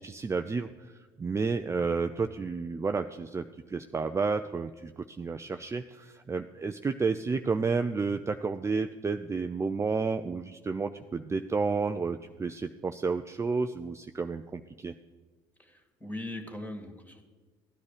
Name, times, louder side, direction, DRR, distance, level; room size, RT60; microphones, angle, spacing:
voice 1, 0.0-14.9, right 4 dB, 20° right, 7 dB, 0.6 m, -31 dB
voice 2, 15.6-17.2, left 1 dB, 10° left, 5 dB, 2.5 m, -40 dB
14.5 x 9.6 x 5.0 m, 1.4 s
hypercardioid pair, 70°, 13 cm